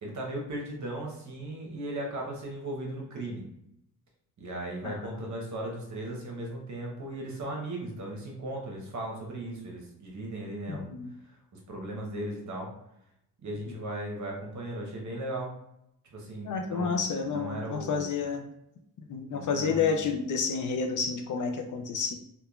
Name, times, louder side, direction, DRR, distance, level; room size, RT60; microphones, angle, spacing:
voice 1, 0.0-3.5 4.4-10.9 11.3-12.7 13.4-15.5 16.1-18.1 19.3-20.0, right 1 dB, 50° right, 0 dB, 1.0 m, -37 dB
voice 2, 10.7-11.1 16.4-18.5 19.1-22.1, left 5 dB, 50° left, 5 dB, 0.5 m, -30 dB
2.8 x 2.2 x 2.3 m, 0.82 s
cardioid pair, 75°, 39 cm